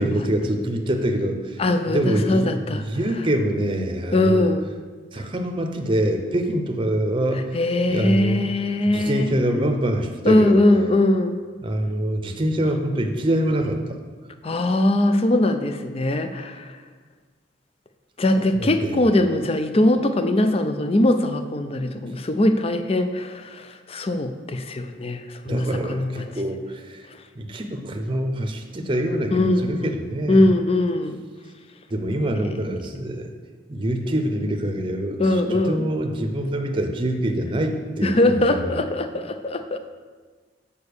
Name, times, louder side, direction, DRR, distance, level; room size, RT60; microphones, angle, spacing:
voice 1, 0.0-1.6 1.9-4.5 5.1-7.5 7.9-8.5 8.9-10.6 11.6-14.0 18.5-18.9 25.5-27.0 27.4-30.5 31.9-33.3 33.7-38.8, right 1 dB, 30° right, 4 dB, 0.7 m, -25 dB
voice 2, 1.6-2.9 4.1-4.7 7.3-9.3 10.2-11.4 14.4-16.8 18.2-26.3 29.3-29.9 30.3-31.2 35.2-35.8 38.0-39.8, left 1 dB, 35° left, 8 dB, 0.5 m, -21 dB
6.7 x 5.4 x 6.7 m, 1.5 s
head